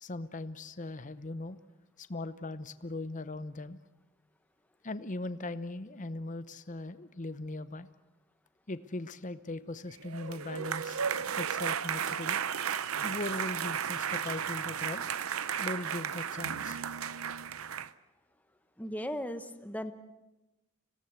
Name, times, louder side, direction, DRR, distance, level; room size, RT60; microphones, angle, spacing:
voice 1, 0.0-1.6 2.0-3.8 4.8-7.9 8.7-11.0 11.4-12.4 13.0-15.0 15.6-16.8, left 2 dB, 35° left, 13 dB, 0.9 m, -39 dB
sound 1, 10.0-17.9, right 8 dB, 75° right, 0.7 m, -34 dB
voice 2, 18.8-19.9, equal, 5° left, 9 dB, 1.1 m, -37 dB
26.0 x 17.5 x 8.2 m, 0.99 s
head